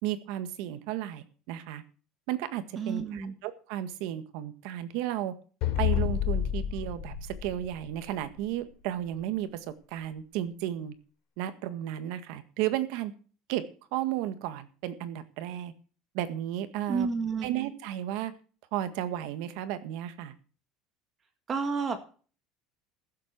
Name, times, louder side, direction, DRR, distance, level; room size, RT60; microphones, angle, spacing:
voice 1, 0.0-1.8 2.3-5.3 5.8-10.9 11.4-13.1 13.5-13.6 13.9-15.7 16.1-17.1 17.4-18.3 18.7-20.3, right 12 dB, 65° right, 11 dB, 1.7 m, -33 dB
voice 2, 2.7-3.3 16.9-17.6 21.5-22.0, right 5 dB, 25° right, 8 dB, 1.8 m, -30 dB
sound 1, 5.6-8.3, left 10 dB, 55° left, 4.1 m, -29 dB
15.0 x 7.8 x 6.0 m, 0.40 s
cardioid pair, 165°, 0 cm